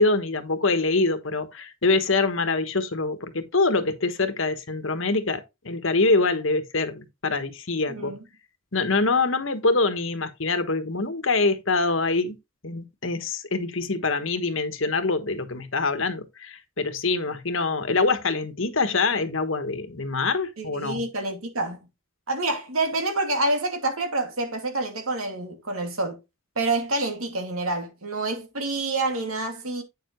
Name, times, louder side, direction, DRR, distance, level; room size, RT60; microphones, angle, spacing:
voice 1, 0.0-8.1 8.7-12.4 12.6-21.0, left 3 dB, 70° left, 1.3 m, -24 dB
voice 2, 7.9-8.2 20.6-21.9 22.3-26.2 26.6-29.8, right 2 dB, 90° right, 2.4 m, -27 dB
8.9 x 6.8 x 3.0 m
head